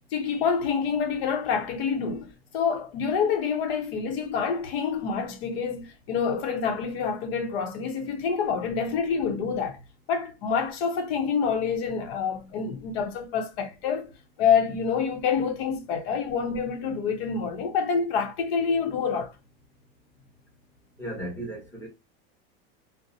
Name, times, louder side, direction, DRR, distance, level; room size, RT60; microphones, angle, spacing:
voice 1, 0.1-9.8 10.1-14.1 14.4-19.3, left 6 dB, 70° left, 0.9 m, -27 dB
voice 2, 21.0-21.9, right 1 dB, 10° left, 1.1 m, -35 dB
2.6 x 2.1 x 2.6 m
supercardioid pair, 155°, 31 cm